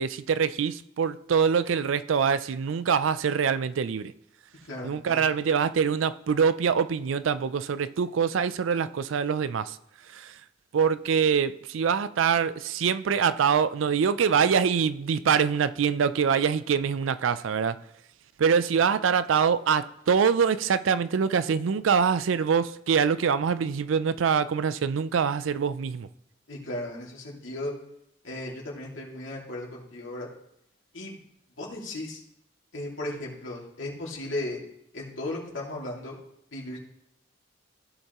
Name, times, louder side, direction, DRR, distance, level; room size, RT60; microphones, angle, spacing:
voice 1, 0.0-4.1 4.8-9.8 10.1-10.4 10.7-17.8 18.4-26.1, right 6 dB, 85° right, 0.4 m, -24 dB
voice 2, 4.6-5.3 26.5-27.7 28.2-30.3 30.9-31.2 31.6-32.2 32.7-34.6 34.9-36.1 36.5-36.8, left 1 dB, 80° left, 2.3 m, -36 dB
15.5 x 5.4 x 3.0 m
head